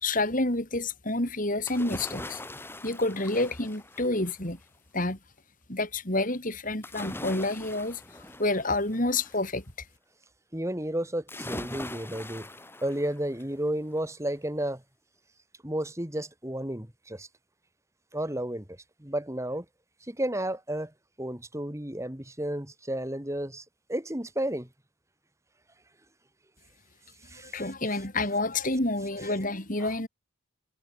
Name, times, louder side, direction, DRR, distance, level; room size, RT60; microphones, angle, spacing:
voice 1, 0.0-2.4 2.8-4.6 4.9-5.2 5.7-8.0 8.4-9.6 27.4-30.1, left 2 dB, 40° left, 4.4 m, -28 dB
sound 1, 1.7-4.5 6.8-9.4 11.3-13.6 14.0-14.1, left 1 dB, 10° left, 4.4 m, -41 dB
voice 2, 10.5-12.5 12.8-14.8 15.6-17.3 18.1-19.7 20.1-20.9 21.2-24.7 27.3-27.6 29.8-29.9, right 1 dB, 15° right, 2.1 m, -32 dB
head